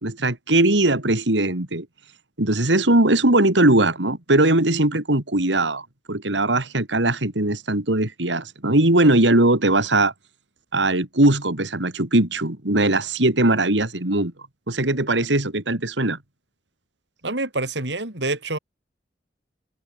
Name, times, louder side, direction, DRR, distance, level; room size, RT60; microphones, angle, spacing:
voice 1, 0.0-1.9 2.4-10.1 10.7-14.3 14.7-16.2, right 2 dB, 85° right, 3.3 m, -20 dB
voice 2, 17.2-18.6, right 2 dB, 70° right, 4.8 m, -26 dB
head